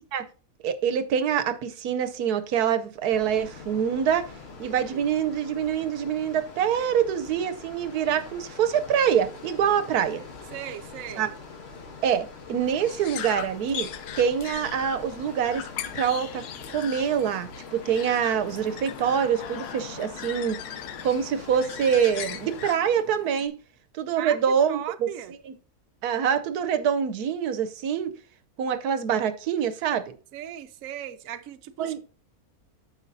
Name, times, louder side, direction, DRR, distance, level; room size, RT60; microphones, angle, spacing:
voice 1, 0.6-4.3 4.6-10.2 11.2-11.3 12.0-13.9 14.2-15.6 15.9-16.4 16.7-20.6 21.0-23.5 23.9-25.1 25.5-25.6 26.0-28.1 28.6-30.1 31.8-32.0, right 8 dB, 80° right, 1.2 m, -25 dB
sound 1, 3.1-22.7, left 4 dB, 45° left, 1.2 m, -44 dB
voice 2, 4.6-5.1 10.5-11.3 24.2-25.3 30.3-32.0, right 11 dB, 65° right, 1.0 m, -38 dB
sound 2, 12.7-23.5, left 9 dB, 85° left, 1.3 m, -39 dB
9.2 x 6.9 x 2.6 m
omnidirectional pair, 1.6 m